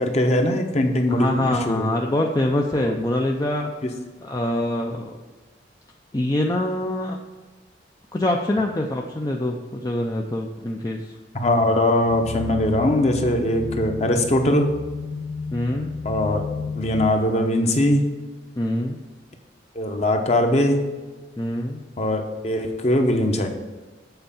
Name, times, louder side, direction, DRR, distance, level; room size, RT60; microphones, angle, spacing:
voice 1, 0.0-1.9 2.8-2.9 11.3-14.7 16.0-16.4 16.8-18.0 19.7-20.8 22.0-23.5, left 1 dB, 35° left, 4 dB, 0.9 m, -21 dB
voice 2, 1.1-3.7 4.2-5.2 6.1-7.2 8.1-11.1 15.5-15.9 18.6-19.0 21.4-21.8, left 1 dB, 20° left, 1 dB, 0.5 m, -24 dB
sound 1, 12.1-17.1, left 4 dB, 85° left, 0.5 m, -33 dB
7.9 x 4.5 x 7.0 m, 1.3 s
head